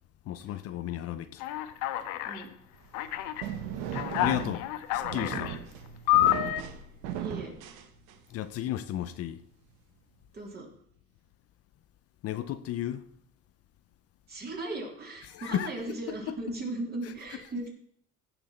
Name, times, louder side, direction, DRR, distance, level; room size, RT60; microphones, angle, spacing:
voice 1, 0.3-1.4 4.2-5.6 8.3-9.4 12.2-13.1 15.3-15.7 16.3-16.4, left 12 dB, 50° left, 0.7 m, -33 dB
Alarm, 1.4-2.4 2.9-3.4 3.9-5.6 6.1-6.6, left 14 dB, 85° left, 1.0 m, -28 dB
sound 1, 2.8-8.4, right 9 dB, 90° right, 1.3 m, -38 dB
voice 2, 7.2-7.5 10.3-10.7 14.3-17.7, right 2 dB, 30° right, 3.3 m, -37 dB
16.0 x 6.1 x 4.4 m
cardioid pair, 125°, 30 cm